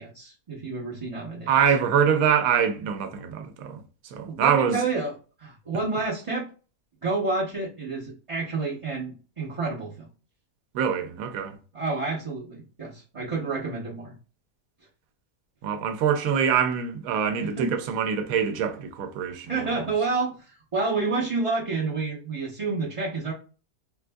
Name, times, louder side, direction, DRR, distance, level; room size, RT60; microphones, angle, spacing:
voice 1, 0.0-1.5 4.2-5.1 5.4-6.5 7.0-10.1 11.7-14.1 17.6-17.8 19.5-23.3, right 3 dB, 40° right, 0.4 m, -29 dB
voice 2, 1.5-3.8 4.1-4.8 10.7-11.6 15.6-19.5, right 8 dB, 75° right, 1.0 m, -24 dB
3.7 x 2.5 x 2.2 m
omnidirectional pair, 1.5 m